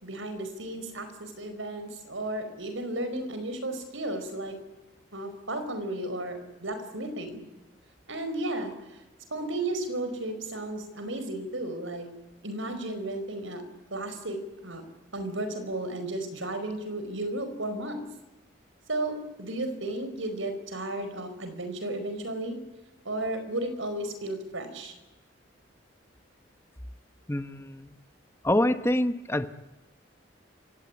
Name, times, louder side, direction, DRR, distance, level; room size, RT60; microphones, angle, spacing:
voice 1, 0.0-4.6 5.1-7.4 8.1-8.7 9.3-12.1 12.4-13.6 13.9-14.8 15.1-18.0 18.9-22.6 23.0-24.9, right 1 dB, 75° right, 8 dB, 4.8 m, -34 dB
voice 2, 27.3-27.9 28.4-29.5, left 1 dB, 15° left, 10 dB, 0.9 m, -26 dB
28.0 x 17.0 x 9.6 m, 1.0 s
head